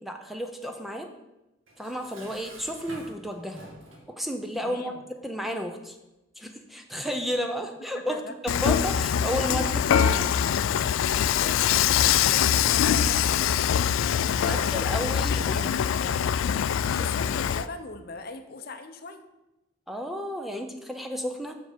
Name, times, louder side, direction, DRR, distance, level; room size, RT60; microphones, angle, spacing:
voice 1, 0.0-1.1 1.8-3.7 4.2-4.9 5.2-6.0 6.4-10.3 14.4-15.7 19.9-21.6, equal, ahead, 4 dB, 0.6 m, -32 dB
Dishes pots and pans, 1.7-4.1, right 1 dB, 80° right, 2.2 m, -47 dB
voice 2, 4.5-5.0 7.9-8.3 11.1-13.4 14.4-16.2 16.7-19.2, left 3 dB, 50° left, 7 dB, 0.7 m, -40 dB
Dishes pots and pans / Frying (food), 8.5-17.7, left 9 dB, 80° left, 0.3 m, -23 dB
7.7 x 6.4 x 5.0 m, 0.97 s
head